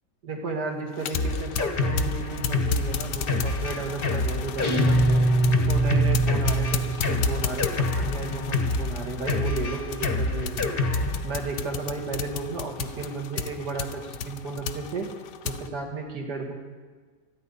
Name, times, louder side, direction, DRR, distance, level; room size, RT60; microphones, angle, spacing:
voice 1, 0.2-5.3 5.7-10.8 11.2-15.1 15.4-16.5, right 3 dB, 65° right, 1 dB, 2.5 m, -33 dB
sound 1, 0.9-15.7, left 7 dB, 75° left, 1.3 m, -35 dB
Drum kit, 1.1-11.2, left 3 dB, 35° left, 1.1 m, -27 dB
sound 2, 4.6-7.2, right 3 dB, 20° left, 0.8 m, -23 dB
27.0 x 9.8 x 4.1 m, 1.4 s
omnidirectional pair, 1.9 m